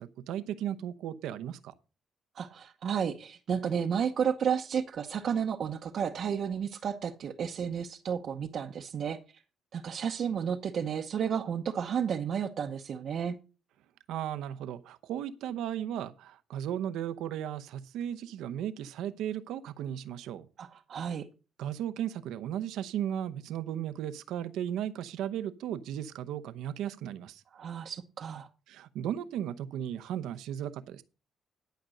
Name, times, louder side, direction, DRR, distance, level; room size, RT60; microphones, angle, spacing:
voice 1, 0.0-1.7 14.1-20.5 21.6-27.4 28.7-31.0, right 10 dB, 85° right, 0.8 m, -36 dB
voice 2, 2.4-9.2 9.7-13.4 20.6-21.3 27.5-28.5, right 7 dB, 60° right, 0.9 m, -32 dB
11.5 x 5.2 x 6.4 m
cardioid pair, 90°, 0 cm